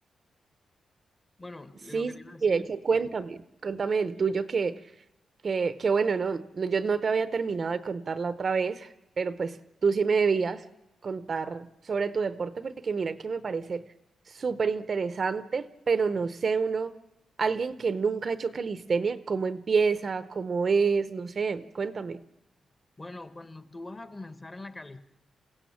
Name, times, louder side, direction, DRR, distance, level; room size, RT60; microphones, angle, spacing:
voice 1, 1.4-3.0 23.0-25.0, left 2 dB, 20° left, 9 dB, 1.1 m, -43 dB
voice 2, 2.4-4.8 5.4-9.6 9.8-10.6 11.0-13.8 14.3-16.9 17.4-22.2, right 5 dB, 40° right, 12 dB, 0.7 m, -28 dB
28.0 x 16.5 x 7.2 m, 0.95 s
wide cardioid pair, 140°, 0 cm